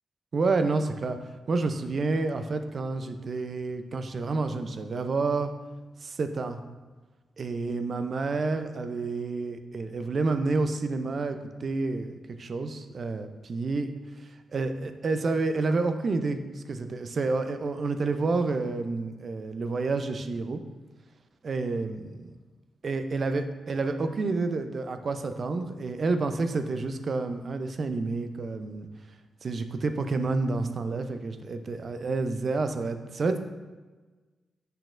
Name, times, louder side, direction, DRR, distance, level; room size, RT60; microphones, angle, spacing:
voice 1, 0.3-1.2 1.5-5.5 6.0-6.6 7.4-13.9 14.5-20.6 21.4-22.1 22.8-28.9 29.4-33.4, right 3 dB, 55° right, 8 dB, 0.5 m, -29 dB
6.7 x 5.8 x 2.5 m, 1.3 s
hypercardioid pair, 40°, 0 cm